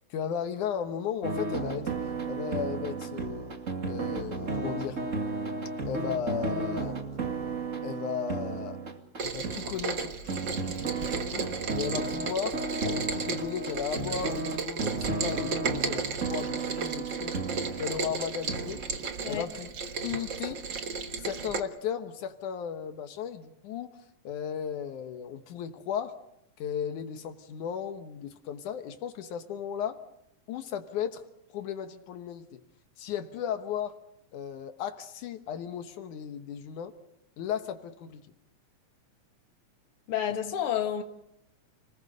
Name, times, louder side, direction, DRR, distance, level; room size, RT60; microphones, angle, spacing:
voice 1, 0.1-1.9 2.3-3.4 3.8-5.0 5.9-7.0 7.8-8.8 9.2-11.5 11.8-17.4 17.8-18.8 19.2-19.7 20.0-20.6 21.2-23.9 24.2-26.1 26.6-30.0 30.5-31.3 31.5-32.6 33.0-34.0 34.3-36.9 37.4-38.2, left 8 dB, 80° left, 2.7 m, -35 dB
sound 1, 1.2-19.4, right 3 dB, 30° right, 2.1 m, -34 dB
Rain, 9.2-21.6, right 5 dB, 45° right, 1.7 m, -34 dB
voice 2, 40.1-41.0, left 9 dB, 50° left, 2.5 m, -29 dB
29.5 x 20.5 x 6.6 m
omnidirectional pair, 3.5 m